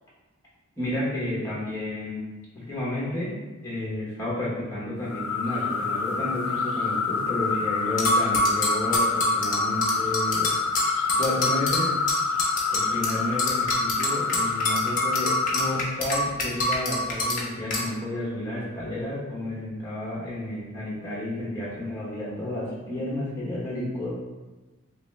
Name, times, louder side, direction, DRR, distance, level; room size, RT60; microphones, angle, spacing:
voice 1, 0.8-2.2 2.5-3.3 3.6-10.5 10.8-11.9 12.7-24.1, left 1 dB, 15° left, -8 dB, 0.9 m, -31 dB
sound 1, 5.1-15.9, left 5 dB, 90° left, 0.4 m, -27 dB
sound 2, 8.0-13.1 13.4-17.4 17.7-17.8, left 1 dB, 40° left, 0.6 m, -25 dB
3.0 x 2.9 x 3.1 m, 1.2 s
head